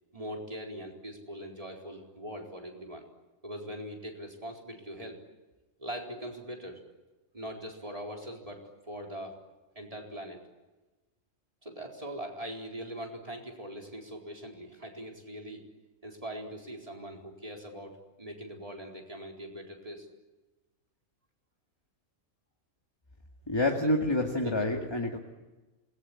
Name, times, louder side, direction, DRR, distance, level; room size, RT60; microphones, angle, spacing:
voice 1, 0.1-3.0 3.4-5.2 5.8-6.8 7.3-9.4 9.8-10.4 11.6-15.6 16.0-20.1 23.7-23.9 24.4-24.8, equal, 25° right, 1 dB, 4.3 m, -41 dB
voice 2, 23.5-25.2, left 1 dB, 20° left, 1 dB, 2.3 m, -28 dB
27.5 x 21.0 x 9.9 m, 1.2 s
omnidirectional pair, 1.4 m